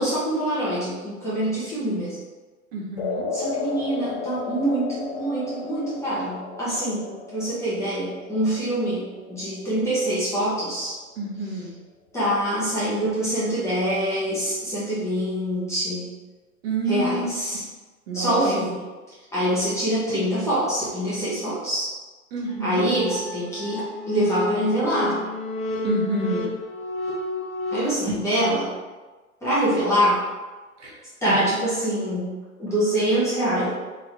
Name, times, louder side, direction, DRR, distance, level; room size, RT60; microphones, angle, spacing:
voice 1, 0.0-2.2 3.3-10.9 12.1-16.1 16.9-17.6 18.1-18.7 19.3-21.9 22.6-25.2 27.7-28.7 29.4-30.2 31.2-32.3 32.6-33.7, right 1 dB, 5° left, -10 dB, 0.8 m, -25 dB
voice 2, 2.7-3.3 11.2-11.8 16.6-17.3 18.1-18.6 22.3-22.8 25.8-26.5 30.8-31.0 31.3-31.5, right 2 dB, 45° right, -3 dB, 1.0 m, -28 dB
sound 1, 3.0-11.3, left 4 dB, 40° left, 0.4 m, -34 dB
sound 2, 22.5-27.8, left 1 dB, 65° left, 1.0 m, -30 dB
3.3 x 3.0 x 3.7 m, 1.3 s
hypercardioid pair, 125°, 45 cm